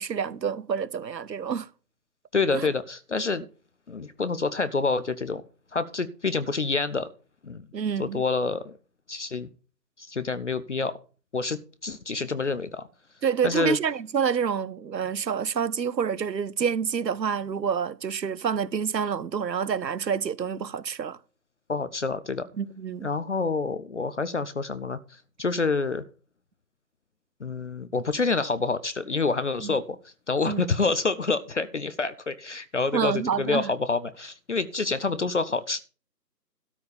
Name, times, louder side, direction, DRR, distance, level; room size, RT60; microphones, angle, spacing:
voice 1, 0.0-1.7 2.5-2.7 7.7-8.2 13.2-21.2 22.6-23.1 29.6-29.7 30.5-30.6 32.9-33.7, right 7 dB, 90° right, 0.8 m, -28 dB
voice 2, 2.3-3.4 3.9-5.4 5.7-7.1 7.4-7.6 8.0-8.8 9.1-9.5 10.0-10.9 11.3-12.9 13.4-13.8 21.7-22.5 23.0-26.0 27.4-30.0 30.3-35.8, left 4 dB, 45° left, 0.6 m, -27 dB
13.0 x 4.6 x 6.7 m
figure-of-eight pair, 160°, 49 cm